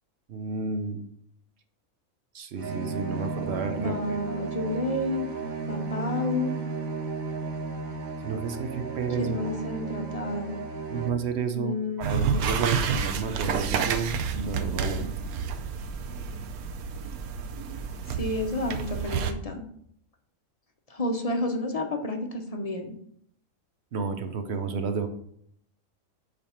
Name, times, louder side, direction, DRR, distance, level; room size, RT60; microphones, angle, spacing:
voice 1, 0.3-1.0 2.3-4.2 8.2-9.5 10.9-15.1 23.9-25.1, right 5 dB, 55° right, 7 dB, 1.0 m, -31 dB
sound 1, 2.5-11.1, right 4 dB, 70° right, 1.8 m, -34 dB
voice 2, 3.8-5.3 5.7-6.5 9.2-10.6 11.5-12.4 18.2-19.7 20.9-23.0, left 2 dB, 35° left, 4 dB, 0.7 m, -30 dB
sound 2, 12.0-19.3, right 6 dB, 85° right, 1.2 m, -30 dB
7.8 x 3.5 x 5.7 m, 0.68 s
omnidirectional pair, 1.5 m